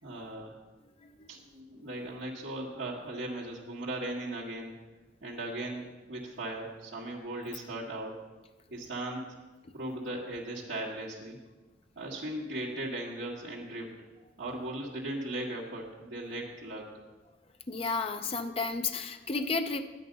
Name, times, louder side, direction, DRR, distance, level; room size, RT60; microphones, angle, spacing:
voice 1, 0.0-0.6 1.3-4.7 5.2-5.8 6.1-8.3 8.7-9.3 9.7-11.4 12.0-13.9 14.4-16.9, right 1 dB, 65° right, -7 dB, 1.8 m, -38 dB
voice 2, 17.7-19.8, left 4 dB, 30° left, 7 dB, 0.5 m, -32 dB
11.5 x 9.1 x 5.4 m, 1.2 s
head